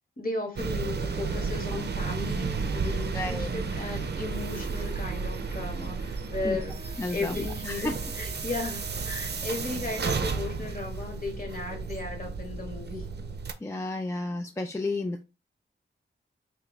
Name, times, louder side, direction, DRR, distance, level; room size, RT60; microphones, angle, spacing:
voice 1, 0.2-6.7 7.1-13.1, left 2 dB, 45° left, 2 dB, 1.4 m, -35 dB
sound 1, 0.6-13.5, right 4 dB, 55° right, 0.5 m, -33 dB
voice 2, 3.1-3.5 6.4-6.6 7.0-7.9 13.6-15.2, left 2 dB, 15° left, 4 dB, 0.4 m, -32 dB
Wind instrument woodwind instrument, 6.3-10.7, right 2 dB, 30° right, 1.0 m, -50 dB
3.7 x 3.1 x 3.1 m, 0.29 s
wide cardioid pair, 75°, 20 cm